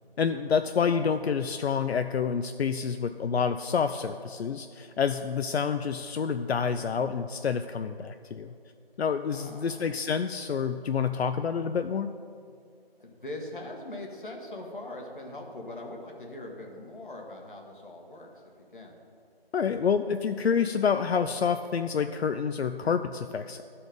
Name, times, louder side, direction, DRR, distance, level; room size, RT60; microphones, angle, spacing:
voice 1, 0.2-8.5 9.0-12.1 19.5-23.6, left 6 dB, 85° left, 9 dB, 0.5 m, -28 dB
voice 2, 1.0-1.3 9.3-10.1 13.0-18.4 18.7-19.0, left 1 dB, 55° left, 1 dB, 1.5 m, -42 dB
12.5 x 4.3 x 5.2 m, 2.3 s
figure-of-eight pair, 170°, 31 cm